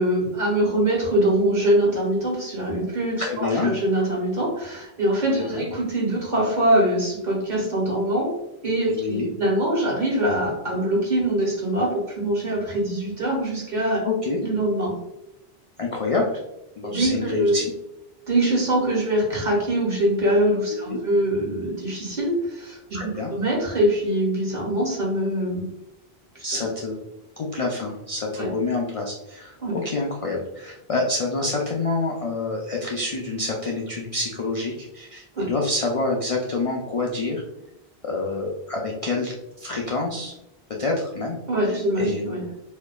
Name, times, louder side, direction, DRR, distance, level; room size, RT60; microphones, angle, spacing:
voice 1, 0.0-8.3 8.6-14.0 14.4-14.9 16.9-17.6 18.3-25.7 26.4-26.5 28.4-28.5 29.6-29.7 35.3-35.5 41.5-42.4, right 1 dB, 50° right, -4 dB, 1.3 m, -23 dB
voice 2, 3.2-3.8 5.3-5.7 8.9-9.3 14.0-14.4 15.8-16.4 16.8-17.7 20.7-21.0 22.9-23.3 26.4-27.0 27.4-37.4 38.0-40.3 40.8-41.4 41.7-42.3, left 3 dB, 50° left, -1 dB, 0.4 m, -27 dB
4.3 x 2.7 x 2.3 m, 0.90 s
omnidirectional pair, 1.0 m